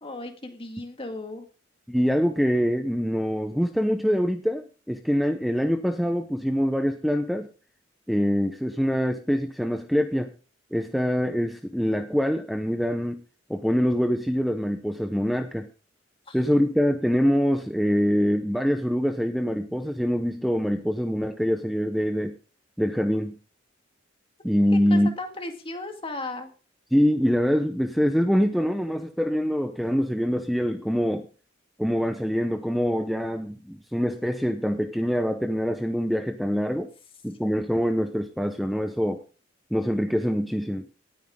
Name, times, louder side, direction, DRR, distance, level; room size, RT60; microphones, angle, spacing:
voice 1, 0.0-1.5 16.3-16.4 24.9-26.5, left 2 dB, 30° left, 5 dB, 2.1 m, -35 dB
voice 2, 1.9-7.5 8.1-10.3 10.7-13.2 13.5-15.7 16.3-22.3 22.8-23.3 24.4-25.1 26.9-31.3 31.8-36.9 37.2-39.2 39.7-40.8, equal, ahead, 7 dB, 0.8 m, -24 dB
18.5 x 9.4 x 3.8 m, 0.37 s
head